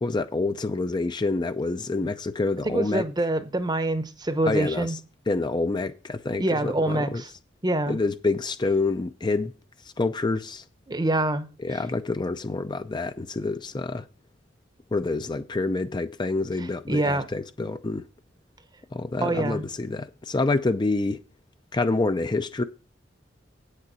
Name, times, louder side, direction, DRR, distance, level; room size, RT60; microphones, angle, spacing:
voice 1, 0.0-3.1 4.4-5.0 5.3-7.2 7.9-9.5 10.0-10.6 11.6-14.1 14.9-18.1 18.9-21.2 21.7-22.6, left 3 dB, 25° left, 0.5 m, -27 dB
voice 2, 2.7-5.0 6.4-7.3 7.6-8.0 10.9-11.5 11.7-11.8 16.9-17.3 19.2-19.6, right 1 dB, 20° right, 0.8 m, -25 dB
8.5 x 6.6 x 6.0 m
head